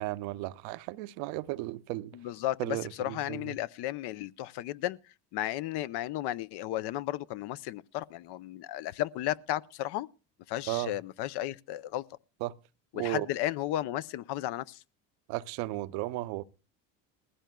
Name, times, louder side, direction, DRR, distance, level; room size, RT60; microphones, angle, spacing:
voice 1, 0.0-2.2 2.6-3.5 10.7-11.0 12.4-12.6 12.9-13.3 15.3-16.4, right 18 dB, 70° right, 0.7 m, -35 dB
voice 2, 2.1-5.0 5.3-10.1 10.5-12.0 12.9-14.8, left 14 dB, 55° left, 0.6 m, -34 dB
19.5 x 15.5 x 2.2 m
supercardioid pair, 80°, 48 cm